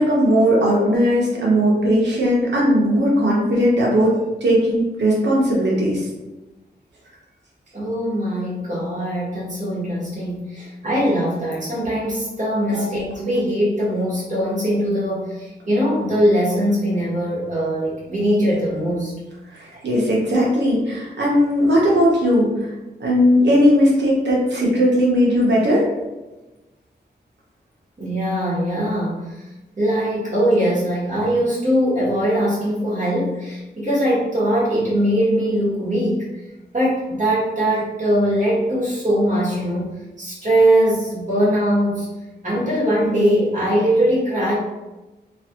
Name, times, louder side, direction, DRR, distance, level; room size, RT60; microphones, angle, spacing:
voice 1, 0.0-4.2 4.4-6.0 12.7-12.8 19.5-22.5 23.0-25.9, equal, 85° right, -4 dB, 1.0 m, -17 dB
voice 2, 7.7-19.1 19.7-19.8 28.0-29.2 29.8-36.3 36.7-39.9 40.2-42.1 42.4-44.5, equal, 45° right, -8 dB, 1.3 m, -21 dB
3.0 x 2.5 x 2.9 m, 1.1 s
wide cardioid pair, 95°, 18 cm